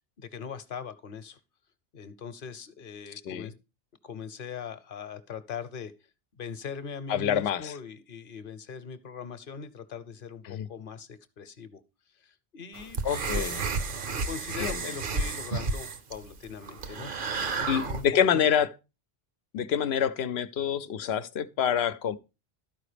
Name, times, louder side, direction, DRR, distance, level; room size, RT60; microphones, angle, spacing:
voice 1, 0.2-1.4 1.9-3.5 4.0-5.9 6.4-11.8 12.1-13.0 13.3-13.5 13.9-18.0 18.3-18.7, left 6 dB, 60° left, 1.0 m, -41 dB
voice 2, 7.1-7.7 10.5-10.7 13.0-13.6 14.6-14.8 17.7-18.7 19.5-22.2, left 8 dB, 90° left, 0.9 m, -26 dB
sound 1, 12.7-18.1, right 4 dB, 60° right, 1.0 m, -32 dB
12.5 x 4.9 x 5.0 m
omnidirectional pair, 1.0 m